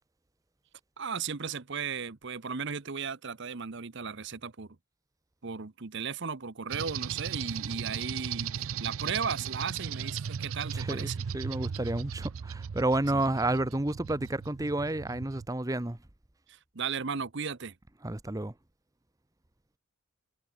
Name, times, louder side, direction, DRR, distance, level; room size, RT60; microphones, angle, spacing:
voice 1, 1.0-4.7 5.4-11.2 13.1-13.2 16.5-17.7, right 6 dB, 55° right, 0.9 m, -36 dB
sound 1, 6.7-15.5, right 7 dB, 80° right, 0.5 m, -37 dB
voice 2, 10.7-16.0 18.0-18.5, right 2 dB, 15° right, 0.8 m, -30 dB
head